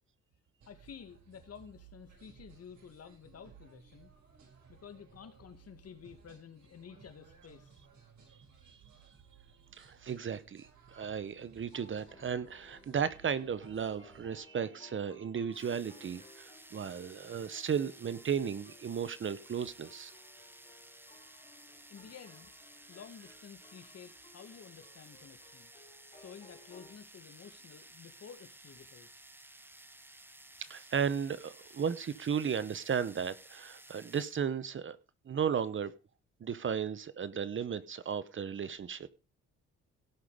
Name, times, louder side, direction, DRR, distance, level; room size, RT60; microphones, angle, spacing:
sound 1, 0.6-14.4, right 6 dB, 65° right, 6.4 m, -59 dB
voice 1, 0.7-4.1 4.7-7.8 21.9-22.5 22.9-25.7 26.1-29.1, left 7 dB, 55° left, 8 dB, 2.3 m, -52 dB
voice 2, 9.7-20.1 30.6-35.0 35.2-35.9 36.4-39.1, right 7 dB, 40° right, 16 dB, 0.9 m, -35 dB
sound 2, 11.6-27.0, left 3 dB, 25° left, 3.9 m, -60 dB
sound 3, 15.5-34.5, right 1 dB, 5° right, 1.1 m, -55 dB
17.5 x 5.8 x 5.1 m, 0.33 s
cardioid pair, 90°, 30 cm